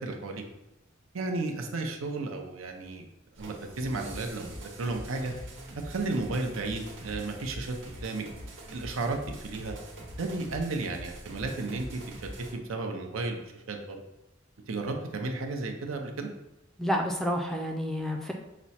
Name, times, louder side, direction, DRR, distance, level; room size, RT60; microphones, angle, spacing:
voice 1, 0.0-0.4 1.1-3.0 3.4-5.3 5.8-8.3 8.7-9.8 10.1-12.0 12.5-14.0 14.7-16.3, right 3 dB, 85° right, 4 dB, 0.7 m, -33 dB
sound 1, 3.3-12.5, right 1 dB, 70° right, 1.1 m, -43 dB
voice 2, 16.8-18.3, equal, ahead, 2 dB, 0.3 m, -29 dB
5.9 x 2.1 x 4.2 m, 0.93 s
head